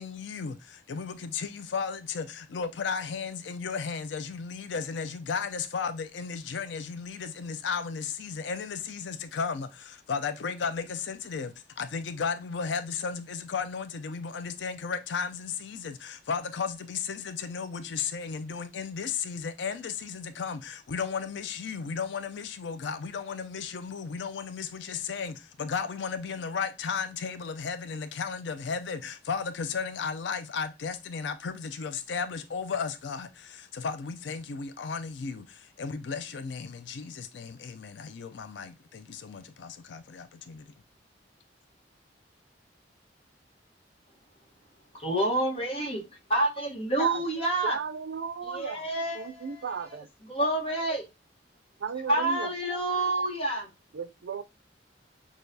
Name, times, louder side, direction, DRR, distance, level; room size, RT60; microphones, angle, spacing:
voice 1, 0.0-40.7, left 5 dB, 75° left, 0.4 m, -34 dB
voice 2, 45.0-46.0 46.3-47.8 48.5-49.6 50.3-51.0 52.1-53.7, right 1 dB, 35° left, 1.1 m, -28 dB
voice 3, 47.6-48.8 49.1-50.1 51.8-52.5 53.9-54.4, right 6 dB, 80° right, 0.4 m, -35 dB
6.4 x 2.4 x 2.6 m
head